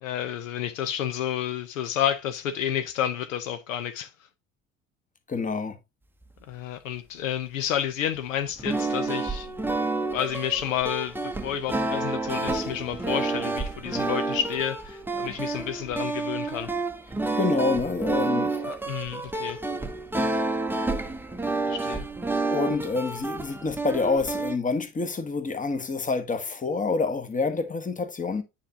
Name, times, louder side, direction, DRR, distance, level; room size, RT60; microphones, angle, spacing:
voice 1, 0.0-4.1 6.5-9.5 10.1-16.7 18.5-19.6 21.7-22.1, left 10 dB, 75° left, 0.7 m, -30 dB
voice 2, 5.3-5.8 17.4-18.5 22.5-28.4, left 4 dB, 20° left, 1.1 m, -27 dB
sound 1, 8.5-24.6, right 3 dB, 5° right, 0.7 m, -29 dB
8.8 x 4.3 x 2.7 m
figure-of-eight pair, 60°, 39 cm